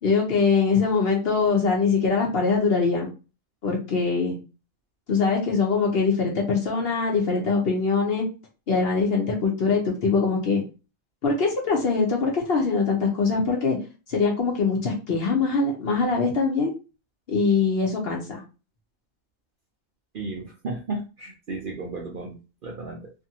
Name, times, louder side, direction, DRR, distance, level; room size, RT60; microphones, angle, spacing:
voice 1, 0.0-3.1 3.6-4.4 5.1-8.2 8.7-10.6 11.2-13.8 14.1-16.7 17.3-18.4, left 4 dB, 55° left, 0 dB, 0.8 m, -23 dB
voice 2, 20.1-23.1, right 3 dB, 60° right, -1 dB, 0.6 m, -34 dB
2.6 x 2.5 x 2.7 m, 0.32 s
omnidirectional pair, 1.4 m